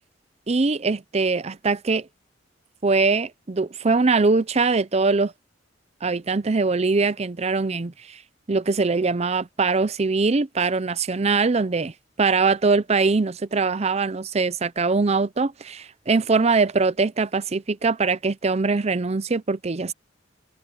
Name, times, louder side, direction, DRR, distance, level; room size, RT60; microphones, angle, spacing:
voice 1, 0.5-2.1 2.8-5.3 6.0-8.2 8.5-19.9, right 4 dB, 35° right, 0.6 m, -22 dB
head